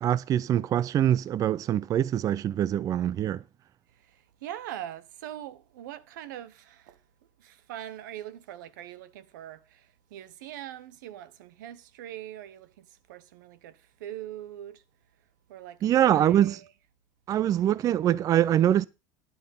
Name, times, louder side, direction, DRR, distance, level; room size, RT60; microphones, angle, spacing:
voice 1, 0.0-3.4 15.8-16.6 17.3-18.9, right 11 dB, 35° right, 0.5 m, -24 dB
voice 2, 3.9-7.0 7.4-14.8 15.5-16.7, right 12 dB, 85° right, 1.0 m, -42 dB
11.0 x 7.8 x 5.5 m
supercardioid pair, 115°, 10 cm